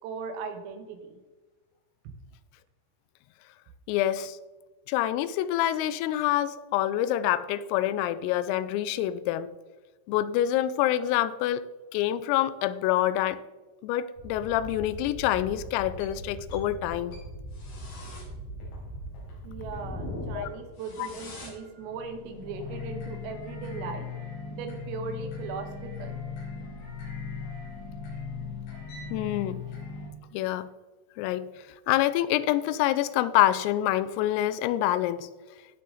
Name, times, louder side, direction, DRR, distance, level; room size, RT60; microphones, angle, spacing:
voice 1, 0.0-1.2 19.4-24.1 24.5-26.2, right 5 dB, 80° right, 6 dB, 4.0 m, -38 dB
voice 2, 3.9-4.4 4.9-9.6 10.1-11.6 11.9-13.4 13.8-17.2 20.3-20.5 21.0-21.1 29.1-29.6 30.3-30.7 31.2-35.3, left 13 dB, 85° left, 14 dB, 3.3 m, -26 dB
sound 1, 14.2-30.1, left 3 dB, 70° left, 7.1 m, -39 dB
18.5 x 6.8 x 3.9 m, 1.2 s
omnidirectional pair, 6.0 m